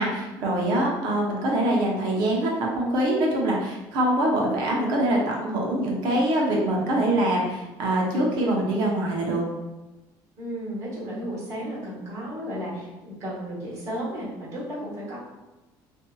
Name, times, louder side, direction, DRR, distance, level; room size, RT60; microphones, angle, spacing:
voice 1, 0.0-9.4, right 1 dB, 60° right, -2 dB, 0.7 m, -24 dB
voice 2, 10.4-15.2, equal, 40° right, -7 dB, 1.2 m, -33 dB
2.7 x 2.6 x 2.3 m, 1.1 s
cardioid pair, 170°, 8 cm